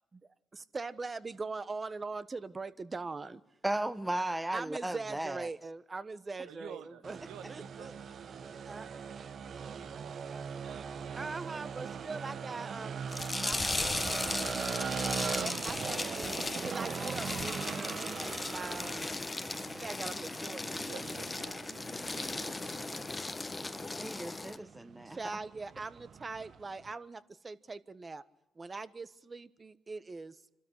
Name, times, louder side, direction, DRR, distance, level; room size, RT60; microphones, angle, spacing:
voice 1, 0.5-3.4 4.5-7.2 7.5-7.9 8.6-8.9 11.1-13.0 13.3-14.5 15.4-19.0 19.7-21.2 25.1-28.2 28.5-30.4, right 3 dB, 35° right, 15 dB, 1.3 m, -42 dB
voice 2, 3.6-5.5 24.0-25.2, right 1 dB, 15° right, 13 dB, 1.1 m, -35 dB
voice 3, 6.5-7.9 9.5-10.4 18.6-18.7 20.7-22.8, right 8 dB, 90° right, 11 dB, 1.3 m, -51 dB
sound 1, 7.0-26.9, right 6 dB, 60° right, 1.0 m, -41 dB
sound 2, 13.1-24.6, left 3 dB, 25° left, 1.1 m, -37 dB
27.0 x 12.5 x 9.9 m, 0.96 s
supercardioid pair, 60°, 0 cm